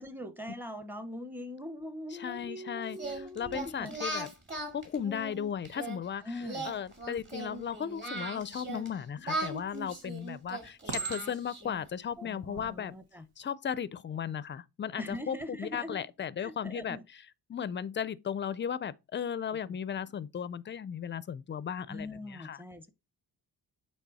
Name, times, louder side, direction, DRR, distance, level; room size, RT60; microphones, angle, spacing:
voice 1, 0.0-4.0 6.2-6.7 12.2-13.2 15.0-16.1 16.4-17.0 19.7-19.8 21.9-22.9, left 1 dB, 5° right, 0.9 m, -42 dB
voice 2, 2.2-3.0 3.4-4.3 4.7-6.2 6.6-13.0 13.4-17.0 17.5-22.6, left 8 dB, 30° left, 0.4 m, -36 dB
Singing, 2.9-6.0 6.4-8.9 9.2-11.8, right 2 dB, 30° right, 2.2 m, -38 dB
Chink clink, 9.4-9.9 10.9-11.7 12.4-12.7, right 4 dB, 80° right, 1.5 m, -38 dB
8.5 x 3.5 x 4.1 m
cardioid pair, 115°, 39 cm